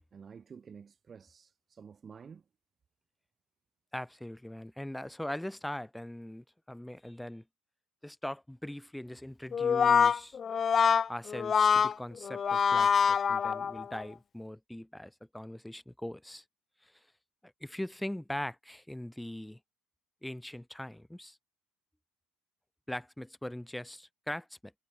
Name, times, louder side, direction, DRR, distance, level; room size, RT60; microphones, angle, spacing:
voice 1, 0.1-2.4, right 6 dB, 30° right, 1.9 m, -51 dB
voice 2, 3.9-7.4 8.0-10.4 11.1-16.4 16.8-17.1 17.4-19.6 20.2-21.4 22.9-24.7, left 1 dB, 5° left, 1.6 m, -41 dB
Brass instrument, 9.5-14.0, left 7 dB, 30° left, 0.4 m, -25 dB
supercardioid pair, 110°, 0 cm